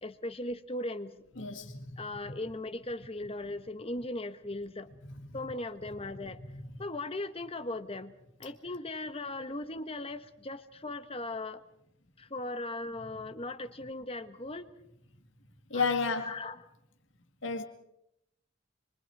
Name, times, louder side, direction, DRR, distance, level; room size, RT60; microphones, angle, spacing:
voice 1, 0.0-1.2 2.0-4.9 5.3-6.4 6.8-8.1 8.4-11.6 12.2-14.7 15.7-16.6, left 2 dB, 30° left, 10 dB, 1.2 m, -38 dB
voice 2, 1.4-1.8 15.7-16.4 17.4-17.6, left 5 dB, 75° left, 5 dB, 2.1 m, -30 dB
26.5 x 24.5 x 4.8 m, 0.79 s
head